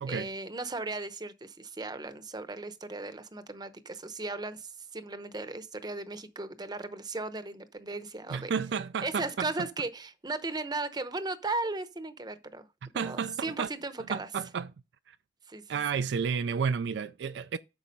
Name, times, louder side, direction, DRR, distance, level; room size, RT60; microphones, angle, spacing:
voice 1, 0.1-8.5 9.0-12.7 12.9-14.3 15.5-15.6, right 3 dB, 20° right, 0.8 m, -36 dB
voice 2, 8.3-9.5 12.8-13.7 14.1-14.7 15.1-15.2 15.7-17.6, right 6 dB, 65° right, 0.4 m, -31 dB
8.5 x 6.0 x 5.3 m
head